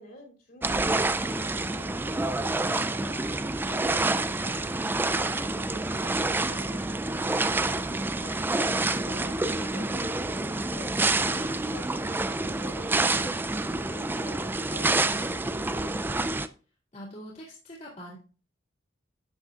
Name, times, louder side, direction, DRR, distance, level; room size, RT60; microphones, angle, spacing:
voice 1, 0.0-16.2, equal, 55° left, -1 dB, 3.0 m, -48 dB
sound 1, 0.6-16.5, right 2 dB, 10° right, 0.3 m, -28 dB
voice 2, 16.9-18.2, equal, 40° left, -7 dB, 2.4 m, -43 dB
11.5 x 8.1 x 2.4 m, 0.39 s
head